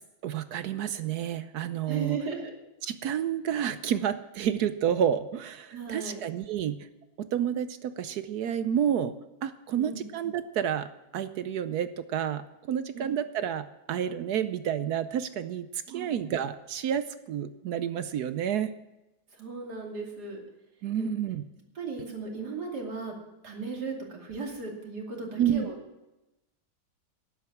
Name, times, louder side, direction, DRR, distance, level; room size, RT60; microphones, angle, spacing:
voice 1, 0.2-2.2 2.8-6.9 7.2-9.1 9.4-10.9 11.1-18.7 20.8-21.4 25.4-25.7, right 9 dB, 70° right, 12 dB, 0.9 m, -30 dB
voice 2, 1.9-2.5 5.7-6.2 9.7-10.0 12.9-13.0 15.9-16.2 19.3-20.4 21.0-21.1 21.7-23.1 23.4-25.7, right 4 dB, 50° right, 0 dB, 3.2 m, -36 dB
11.5 x 11.0 x 7.2 m, 0.98 s
omnidirectional pair, 2.2 m